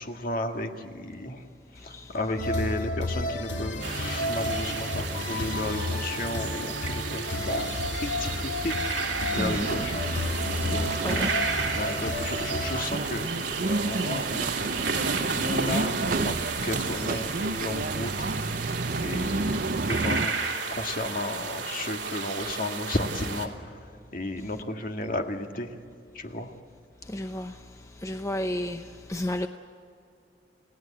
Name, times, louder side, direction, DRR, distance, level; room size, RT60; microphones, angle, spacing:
voice 1, 0.0-1.5 1.7-8.8 9.3-10.0 10.5-11.2 11.7-16.4 16.6-18.3 19.0-20.3 20.7-25.8 26.1-26.5, left 1 dB, 50° left, 1.9 m, -33 dB
sound 1, 2.4-12.9, left 2 dB, 80° left, 2.4 m, -31 dB
sound 2, 3.8-23.5, right 5 dB, 70° right, 2.9 m, -33 dB
sound 3, 9.3-20.3, right 3 dB, 50° right, 0.7 m, -31 dB
voice 2, 9.4-9.7 10.9-11.8 27.1-27.6 28.0-29.5, left 1 dB, 15° left, 0.7 m, -32 dB
29.5 x 18.0 x 8.6 m
head